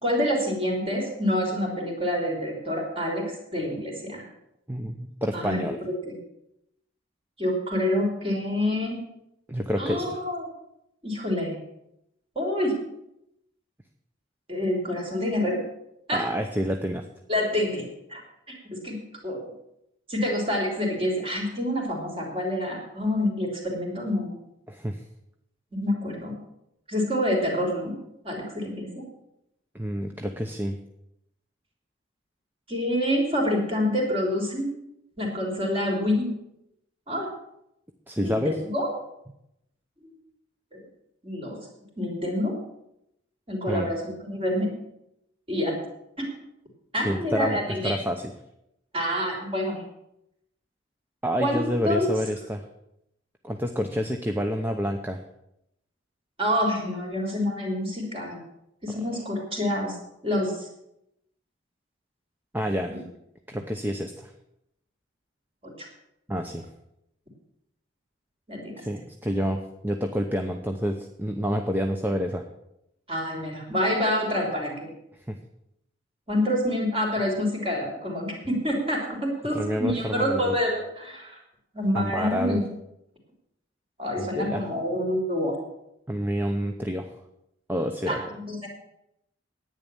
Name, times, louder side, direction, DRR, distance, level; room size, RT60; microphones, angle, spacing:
voice 1, 0.0-4.3 5.3-5.6 6.0-6.2 7.4-9.0 9.8-10.5 11.0-11.6 12.3-12.7 14.5-15.6 16.1-16.2 17.3-18.2 18.5-19.0 19.2-19.5 20.1-24.3 25.7-26.4 26.9-27.9 28.2-29.0 32.7-34.7 35.2-36.3 37.1-37.3 38.2-38.9 40.0-40.1 40.7-40.8 41.2-41.6 42.0-42.6 43.5-44.7 45.5-45.7 46.2-46.3 46.9-47.9 48.9-49.8 51.4-52.1 56.4-58.4 58.8-60.0 60.2-60.7 62.9-63.0 65.6-65.9 68.5-68.8 73.1-74.9 76.3-81.4 81.7-82.6 84.0-85.6 88.1-88.7, left 1 dB, 30° right, -1 dB, 3.4 m, -27 dB
voice 2, 4.7-5.8 9.5-10.2 16.1-17.1 24.7-25.0 29.7-30.8 38.1-38.6 43.6-43.9 47.0-48.3 51.2-52.6 53.4-55.2 62.5-63.0 63.5-64.3 66.3-66.7 68.8-72.5 75.3-75.4 79.5-80.6 81.9-82.6 84.2-84.6 86.1-87.1 87.7-88.2, equal, 10° right, 4 dB, 0.7 m, -28 dB
10.5 x 9.2 x 6.9 m, 0.81 s
head